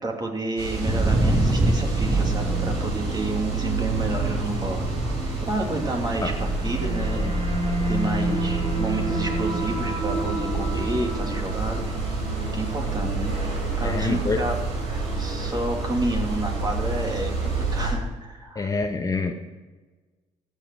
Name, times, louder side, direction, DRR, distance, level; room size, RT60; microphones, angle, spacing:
voice 1, 0.0-4.8 5.4-7.4 7.9-11.9 12.5-13.3 13.8-14.6 14.8-18.7, right 2 dB, 30° right, 1 dB, 2.9 m, -30 dB
sound 1, 0.6-17.9, right 3 dB, 85° right, 3.1 m, -28 dB
Thunder, 0.8-13.7 14.0-14.6 14.9-16.4, right 1 dB, 15° right, 2.3 m, -30 dB
sound 2, 0.9-16.2, right 1 dB, 45° right, 3.5 m, -33 dB
voice 2, 13.8-14.4 18.5-19.3, left 4 dB, 25° left, 5 dB, 1.1 m, -26 dB
14.5 x 7.6 x 4.7 m, 1.3 s
supercardioid pair, 65°, 15 cm